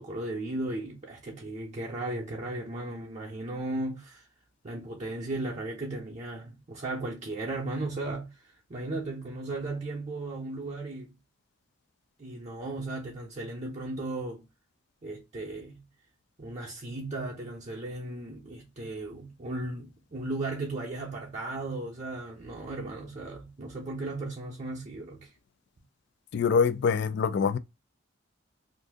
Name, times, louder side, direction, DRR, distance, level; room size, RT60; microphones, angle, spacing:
voice 1, 0.0-4.2 4.6-8.4 8.7-11.2 12.2-14.4 15.0-15.9 16.4-25.3, right 2 dB, 35° right, 0.6 m, -36 dB
voice 2, 26.3-27.6, left 6 dB, 55° left, 0.3 m, -24 dB
2.6 x 2.6 x 3.4 m
head